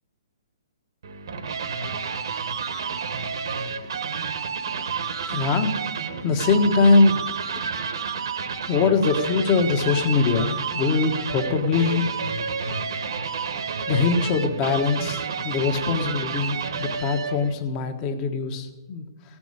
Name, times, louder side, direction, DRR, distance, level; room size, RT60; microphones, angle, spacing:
sound 1, 1.0-17.5, right 6 dB, 70° right, 1.2 m, -30 dB
voice 1, 5.2-7.2 7.5-7.7 8.7-12.1 13.9-19.4, left 4 dB, 25° left, 6 dB, 1.4 m, -22 dB
16.5 x 6.1 x 9.8 m, 1.2 s
hypercardioid pair, 155°, 2 cm